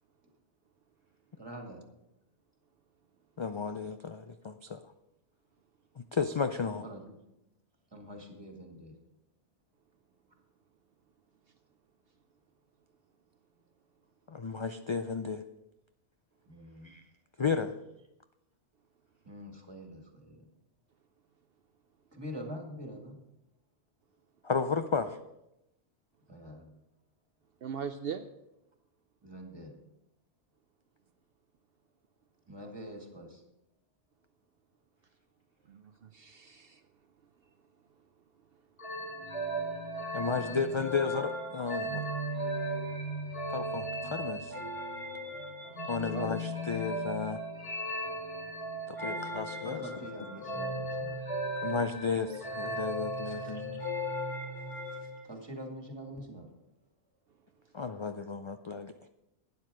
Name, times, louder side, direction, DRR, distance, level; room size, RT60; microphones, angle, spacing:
voice 1, 1.4-1.9 6.8-7.2 7.9-9.0 16.5-17.0 19.2-20.5 22.1-23.2 26.3-26.7 29.2-29.8 32.5-33.4 40.3-40.8 49.6-51.3 53.2-53.9 54.7-56.5, equal, 20° right, 2 dB, 2.0 m, -45 dB
voice 2, 3.4-4.8 6.0-6.8 14.3-15.4 16.8-17.0 17.4-17.7 24.4-25.2 40.1-42.0 43.5-44.6 45.9-47.4 48.9-49.8 51.6-53.8 57.7-58.9, left 5 dB, 50° left, 8 dB, 0.3 m, -33 dB
voice 3, 27.6-28.3 35.7-36.8 45.8-46.4 53.5-53.6, right 7 dB, 65° right, 8 dB, 0.8 m, -40 dB
sound 1, 38.8-55.2, equal, 25° left, 2.3 m, -36 dB
12.0 x 9.7 x 4.9 m, 0.89 s
omnidirectional pair, 1.2 m